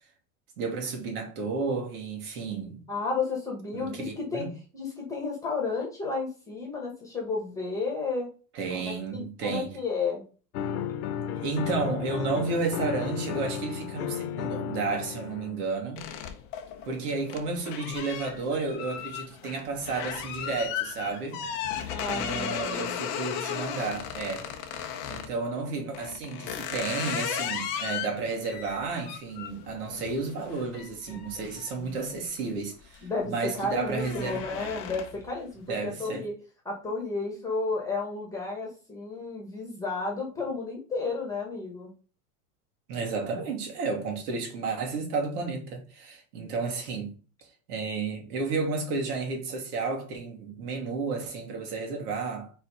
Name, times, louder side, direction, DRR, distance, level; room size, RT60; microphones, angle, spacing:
voice 1, 0.6-2.8 3.7-4.5 8.5-9.8 11.4-16.1 16.8-21.4 22.1-24.5 25.1-34.4 35.7-36.2 42.9-47.1 47.4-52.5, right 4 dB, 80° right, 2.6 m, -32 dB
voice 2, 2.9-4.4 4.7-8.3 8.7-10.2 21.9-23.0 31.1-31.3 31.8-31.9 33.0-36.3 36.6-41.9, left 3 dB, 5° left, 1.4 m, -32 dB
sound 1, 10.5-15.6, left 8 dB, 75° left, 1.0 m, -33 dB
sound 2, 16.0-25.3 25.9-32.4 32.8-33.2 33.5-35.3, left 9 dB, 25° left, 0.6 m, -36 dB
5.0 x 4.5 x 4.9 m
supercardioid pair, 180°, 45 cm